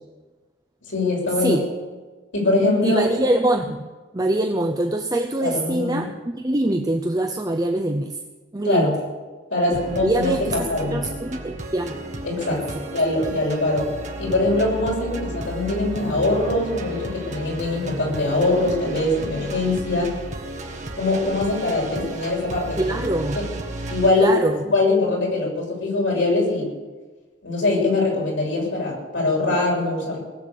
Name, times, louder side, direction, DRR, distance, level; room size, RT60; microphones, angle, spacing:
voice 1, 0.9-1.6 2.3-3.0 5.4-6.1 8.6-8.9 9.5-11.0 12.2-13.9 14.2-20.1 21.0-22.8 23.3-23.5 23.9-24.4 24.6-26.7 27.4-30.2, left 2 dB, 85° left, -2 dB, 6.7 m, -22 dB
voice 2, 2.8-3.9 4.1-6.1 6.3-8.2 8.5-8.9 9.7-12.0 12.5-12.6 22.8-23.4 24.2-24.6, right 1 dB, 20° right, 3 dB, 0.7 m, -24 dB
sound 1, 9.7-24.1, right 1 dB, 40° right, 1.6 m, -33 dB
20.0 x 8.0 x 8.3 m, 1.3 s
head